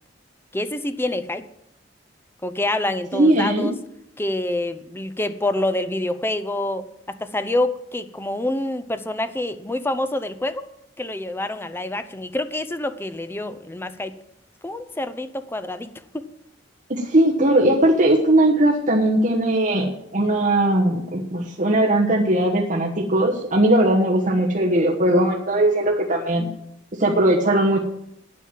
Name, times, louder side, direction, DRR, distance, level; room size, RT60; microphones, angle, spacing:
voice 1, 0.5-1.4 2.4-3.7 4.2-10.7 11.0-14.1 14.6-16.2, left 1 dB, 15° left, 11 dB, 0.7 m, -27 dB
voice 2, 3.1-3.7 17.0-26.5 27.0-27.8, right 1 dB, 45° right, -1 dB, 1.3 m, -19 dB
9.2 x 9.2 x 7.5 m, 0.79 s
head